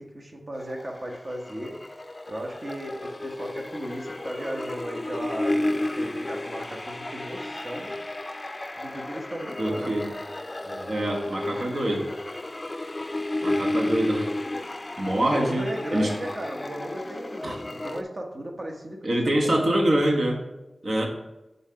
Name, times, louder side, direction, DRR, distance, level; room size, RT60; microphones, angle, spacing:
voice 1, 0.0-1.8 2.3-7.9 8.8-10.0 10.6-11.0 15.2-19.8, right 1 dB, 50° right, 1 dB, 1.1 m, -36 dB
sound 1, 0.5-18.0, left 1 dB, 30° left, 0.4 m, -32 dB
voice 2, 9.6-10.1 10.9-12.1 13.4-14.3 15.0-15.7 15.9-16.1 17.4-17.5 19.0-20.4 20.8-21.1, right 1 dB, 70° right, 0 dB, 1.3 m, -24 dB
5.6 x 4.0 x 5.6 m, 0.97 s
wide cardioid pair, 65°, 0 cm